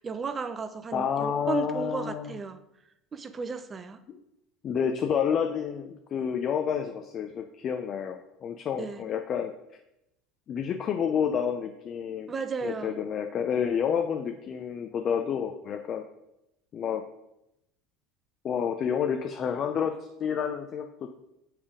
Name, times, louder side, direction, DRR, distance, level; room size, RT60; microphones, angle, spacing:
voice 1, 0.0-2.6 3.1-4.0 8.8-9.1 12.3-13.0, right 5 dB, 30° right, 11 dB, 0.6 m, -34 dB
voice 2, 0.9-2.3 4.1-4.2 4.6-9.5 10.5-12.3 12.6-16.0 16.7-17.0 18.4-21.1, left 7 dB, 45° left, 5 dB, 0.5 m, -29 dB
7.3 x 3.4 x 5.0 m, 0.86 s
hypercardioid pair, 80°, 0 cm